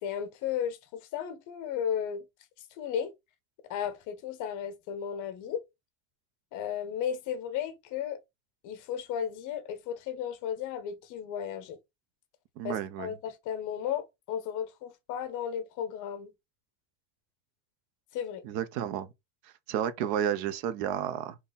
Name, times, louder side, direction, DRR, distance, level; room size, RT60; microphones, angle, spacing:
voice 1, 0.0-2.3 2.8-3.1 3.7-5.6 6.5-8.2 8.6-11.8 12.6-16.3 18.1-18.4, left 8 dB, 40° left, 0.7 m, -34 dB
voice 2, 12.6-13.1 18.4-19.1 19.7-21.4, right 9 dB, 90° right, 0.8 m, -31 dB
3.8 x 3.0 x 3.9 m
cardioid pair, 175°, 47 cm